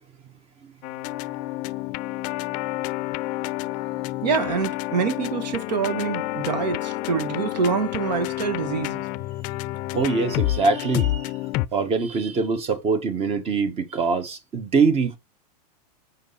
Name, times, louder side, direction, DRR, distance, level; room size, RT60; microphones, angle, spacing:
sound 1, 0.8-11.7, left 17 dB, 45° left, 0.5 m, -29 dB
voice 1, 4.2-9.0, right 6 dB, 85° right, 1.7 m, -26 dB
voice 2, 9.9-11.3 11.7-15.2, right 4 dB, 30° right, 1.5 m, -23 dB
5.4 x 5.1 x 4.1 m
supercardioid pair, 125°, 21 cm